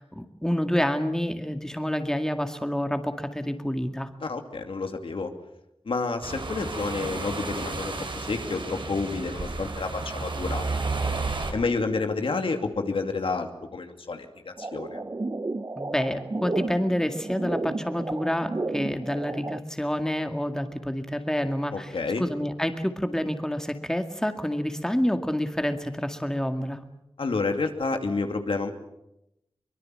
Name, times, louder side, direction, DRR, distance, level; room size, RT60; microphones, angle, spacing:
voice 1, 0.0-4.1 15.8-26.8, equal, 5° left, 6 dB, 2.0 m, -28 dB
voice 2, 4.2-5.3 5.9-10.6 11.5-15.0 21.7-22.2 27.2-28.7, left 3 dB, 80° left, 5 dB, 2.5 m, -29 dB
sound 1, 6.2-11.5, right 3 dB, 65° right, 4.3 m, -32 dB
sound 2, 14.6-19.6, right 2 dB, 35° right, 0.8 m, -33 dB
23.5 x 22.0 x 7.7 m, 0.87 s
wide cardioid pair, 90°, 9 cm